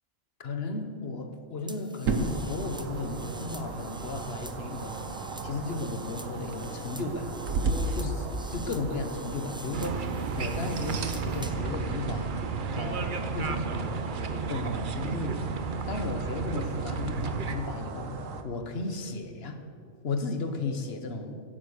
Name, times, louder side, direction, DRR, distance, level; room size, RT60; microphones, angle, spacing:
voice 1, 0.4-5.1 5.4-7.4 7.9-10.1 10.3-12.4 12.7-15.5 15.9-18.1 18.4-19.6 20.0-21.4, left 3 dB, 50° left, 7 dB, 1.4 m, -35 dB
sound 1, 1.7-11.7, right 1 dB, 10° right, 0.3 m, -47 dB
sound 2, 2.0-18.4, right 3 dB, 85° right, 1.4 m, -36 dB
sound 3, 9.7-17.6, right 5 dB, 45° right, 0.9 m, -33 dB
16.0 x 9.6 x 6.6 m, 2.5 s
omnidirectional pair, 1.3 m